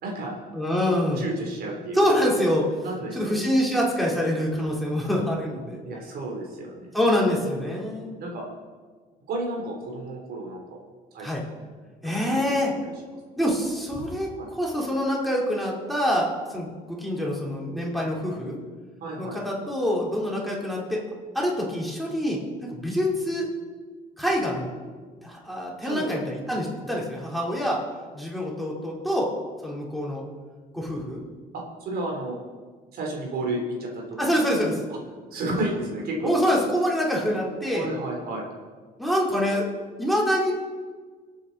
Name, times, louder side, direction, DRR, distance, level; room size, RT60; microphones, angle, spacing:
voice 1, 0.0-0.4 1.2-2.2 2.8-3.4 5.8-6.9 8.2-8.5 9.3-10.8 11.1-11.7 12.0-12.5 12.8-12.9 14.4-14.5 19.0-19.4 25.8-26.1 31.5-32.4 32.9-34.4 35.3-36.3 37.7-38.5, right 2 dB, 65° right, -1 dB, 3.5 m, -32 dB
voice 2, 0.5-1.2 1.9-2.9 3.1-5.8 6.9-8.2 11.2-11.4 12.0-12.7 13.4-18.6 19.2-21.0 21.3-22.4 22.7-23.5 24.2-24.7 25.2-27.8 28.1-29.3 29.6-30.2 30.7-31.2 34.2-34.8 36.2-37.9 39.0-39.7 40.0-40.5, equal, ahead, -4 dB, 3.9 m, -25 dB
25.5 x 8.7 x 4.2 m, 1.5 s
cardioid pair, 110°, 17 cm